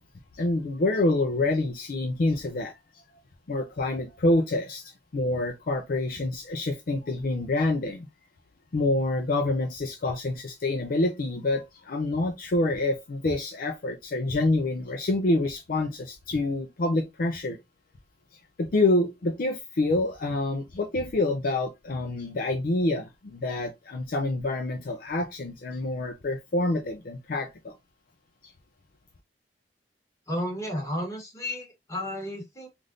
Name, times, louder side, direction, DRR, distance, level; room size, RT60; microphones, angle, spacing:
voice 1, 0.4-2.8 3.5-8.1 8.7-17.6 18.6-27.7, left 2 dB, 55° left, 0.5 m, -27 dB
voice 2, 30.3-32.7, left 1 dB, 20° left, 1.3 m, -32 dB
3.4 x 2.5 x 2.4 m
head